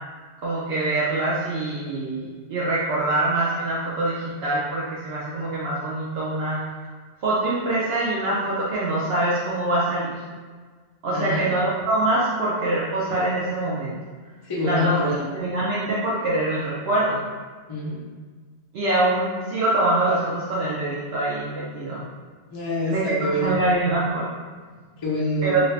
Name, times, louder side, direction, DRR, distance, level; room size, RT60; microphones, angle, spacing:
voice 1, 0.4-6.6 7.2-10.1 11.0-13.9 14.6-15.0 15.3-17.2 18.7-22.0 22.9-24.3 25.4-25.6, right 2 dB, 70° right, -6 dB, 0.8 m, -24 dB
voice 2, 11.1-11.5 14.4-15.2 17.7-18.0 22.5-23.6 25.0-25.6, left 1 dB, 30° left, -5 dB, 0.5 m, -26 dB
3.1 x 2.6 x 3.2 m, 1.5 s
omnidirectional pair, 1.1 m